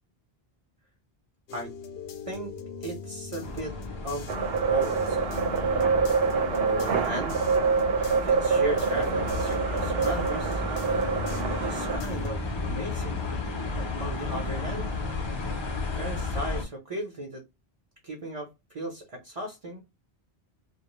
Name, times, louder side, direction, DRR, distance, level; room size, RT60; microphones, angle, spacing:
sound 1, 1.5-12.3, left 6 dB, 75° left, 0.8 m, -41 dB
voice 1, 2.8-3.8 4.0-4.3 4.7-5.3 6.5-7.5 8.1-10.6 11.5-13.3 13.8-14.9 15.9-17.4 18.0-19.8, right 1 dB, 40° right, 0.6 m, -36 dB
sound 2, 3.4-16.6, left 2 dB, 35° left, 0.5 m, -33 dB
sound 3, 4.3-12.0, right 5 dB, 75° right, 0.8 m, -26 dB
2.2 x 2.0 x 2.9 m
omnidirectional pair, 1.0 m